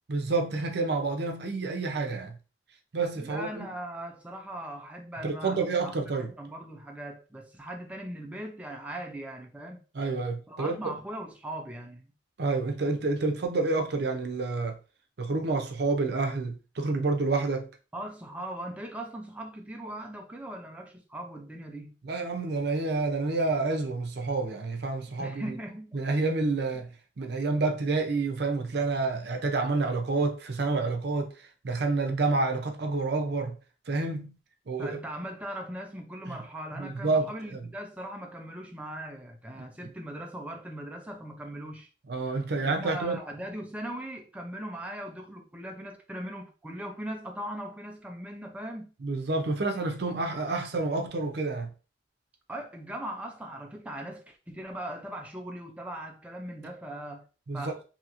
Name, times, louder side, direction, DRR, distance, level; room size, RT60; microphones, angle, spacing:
voice 1, 0.1-2.4 2.9-3.7 5.2-6.3 9.9-10.9 12.4-14.8 15.2-17.7 22.0-25.6 25.9-33.6 33.9-34.4 34.7-35.0 36.8-37.6 42.1-43.2 49.0-51.7 57.5-57.7, right 3 dB, 65° right, 0.6 m, -29 dB
voice 2, 3.2-9.8 10.5-12.1 17.9-22.0 25.2-26.0 34.8-41.9 42.6-48.9 52.5-57.3 57.5-57.8, right 1 dB, 10° right, 0.3 m, -39 dB
2.8 x 2.8 x 2.5 m
head